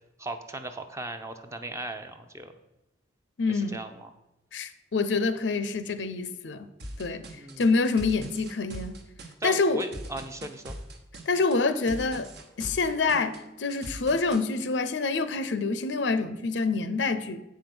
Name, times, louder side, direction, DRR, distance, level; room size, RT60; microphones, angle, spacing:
voice 1, 0.2-2.5 3.5-4.1 7.4-7.7 9.4-10.8, right 2 dB, 15° right, 0.6 m, -37 dB
voice 2, 3.4-3.8 4.5-6.7 7.0-7.3 7.6-9.0 9.4-9.8 11.3-12.3 12.6-17.4, left 3 dB, 80° left, 0.6 m, -26 dB
sound 1, 6.8-14.4, right 1 dB, 60° right, 1.1 m, -41 dB
8.1 x 5.2 x 6.0 m
head